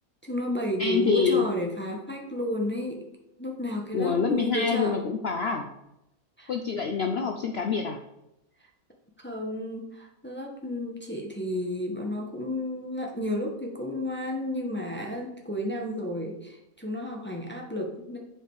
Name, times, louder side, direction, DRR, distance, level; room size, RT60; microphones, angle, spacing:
voice 1, 0.2-3.0 3.4-4.9 6.4-6.5 9.2-18.2, left 1 dB, 10° left, 0 dB, 0.9 m, -32 dB
voice 2, 0.8-1.5 3.9-5.7 6.5-8.0, left 6 dB, 60° left, 4 dB, 0.7 m, -26 dB
7.7 x 4.9 x 4.7 m, 0.86 s
omnidirectional pair, 1.6 m